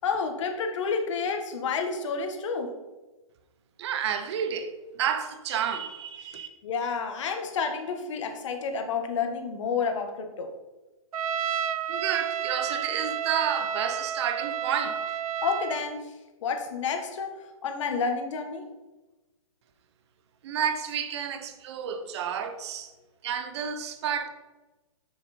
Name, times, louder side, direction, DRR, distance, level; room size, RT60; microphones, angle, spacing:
voice 1, 0.0-2.7 6.6-10.5 15.4-16.1 16.4-17.3 17.6-18.6, left 5 dB, 55° left, 1.5 m, -30 dB
voice 2, 3.8-6.5 11.9-15.2 20.4-22.9 23.2-24.3, right 8 dB, 50° right, 1.0 m, -30 dB
Trumpet, 11.1-15.9, right 8 dB, 80° right, 0.5 m, -31 dB
6.9 x 6.5 x 4.3 m
hypercardioid pair, 135°, 18 cm